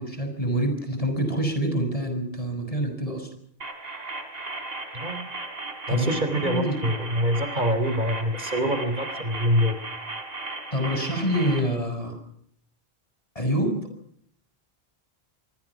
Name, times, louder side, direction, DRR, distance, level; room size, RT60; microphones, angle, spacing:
voice 1, 0.0-3.3 5.9-6.1 6.4-6.8 10.7-12.2 13.3-13.8, equal, 35° left, 6 dB, 6.3 m, -26 dB
sound 1, 3.6-11.6, right 3 dB, 70° right, 4.2 m, -36 dB
voice 2, 5.9-9.8, equal, 50° right, 9 dB, 3.5 m, -25 dB
26.0 x 23.5 x 6.1 m, 0.66 s
omnidirectional pair, 1.1 m